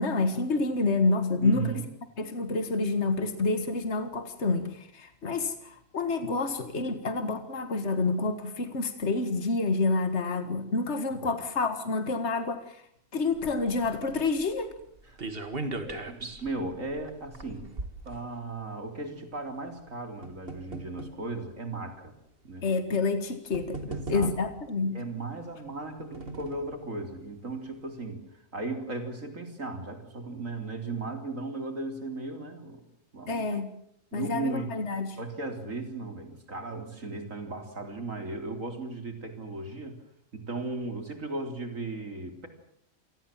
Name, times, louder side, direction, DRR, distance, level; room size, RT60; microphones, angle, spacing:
voice 1, 0.0-1.7 2.2-12.8 13.1-14.8 22.6-23.8 24.1-25.0 33.3-33.7 34.1-35.2, left 3 dB, 60° left, 9 dB, 2.1 m, -28 dB
voice 2, 1.4-1.8 11.2-11.4 15.1-15.2 15.8-17.7 18.1-22.1 22.4-22.7 23.9-24.3 24.9-28.2 28.5-32.9 33.1-33.4 34.1-34.7 35.2-40.0 40.3-42.5, right 2 dB, 80° right, 6 dB, 4.1 m, -36 dB
sound 1, 13.3-18.8 19.7-21.2 22.0-22.1 23.1-23.2 23.5-24.7 25.7-26.8 27.2-27.3 27.6-27.7, right 3 dB, 45° right, 2.2 m, -39 dB
28.0 x 19.5 x 7.5 m, 0.68 s
omnidirectional pair, 1.3 m